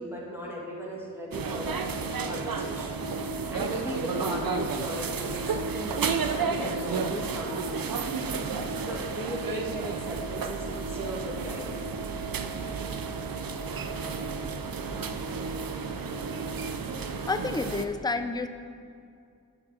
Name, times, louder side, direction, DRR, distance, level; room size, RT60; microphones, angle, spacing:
voice 1, 0.0-1.9 2.2-3.0 3.5-8.2 8.8-11.8, right 1 dB, 5° right, -4 dB, 2.3 m, -37 dB
sound 1, 1.3-17.8, right 4 dB, 80° right, 0.6 m, -32 dB
voice 2, 16.9-18.5, left 3 dB, 10° left, 8 dB, 0.5 m, -30 dB
11.5 x 5.0 x 6.4 m, 2.3 s
wide cardioid pair, 75°, 34 cm